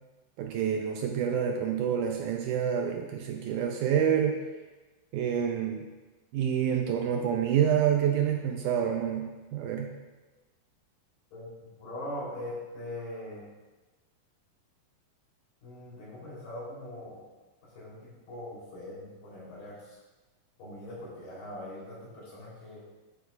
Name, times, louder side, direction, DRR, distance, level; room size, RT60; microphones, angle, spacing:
voice 1, 0.4-4.4 5.1-5.9 6.3-9.9, right 8 dB, 80° right, 2 dB, 1.9 m, -27 dB
voice 2, 11.3-13.5 15.6-17.2 17.7-20.0 20.6-22.8, left 1 dB, 75° left, -7 dB, 4.9 m, -41 dB
10.5 x 9.2 x 2.3 m, 1.2 s
omnidirectional pair, 4.0 m